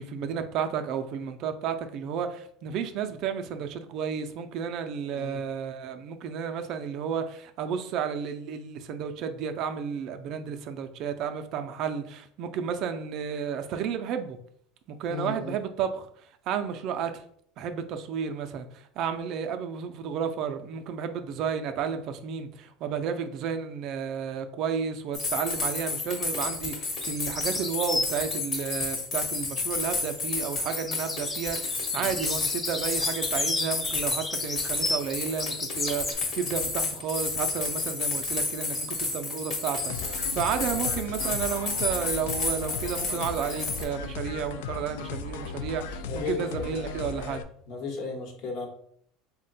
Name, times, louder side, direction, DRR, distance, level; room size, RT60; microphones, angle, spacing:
voice 1, 0.0-14.4 14.9-16.1 16.5-17.2 17.6-47.5, right 7 dB, 50° right, 0.3 m, -32 dB
voice 2, 15.1-15.5 32.0-32.1 40.7-41.1 46.1-46.8 47.7-48.7, left 4 dB, 60° left, 1.0 m, -35 dB
sound 1, 25.1-43.8, left 3 dB, 35° left, 1.0 m, -31 dB
sound 2, 27.0-28.6 29.9-36.1, left 2 dB, 15° left, 0.4 m, -33 dB
sound 3, 39.9-47.4, left 5 dB, 90° left, 0.3 m, -37 dB
3.5 x 2.1 x 4.0 m
supercardioid pair, 145°, 0 cm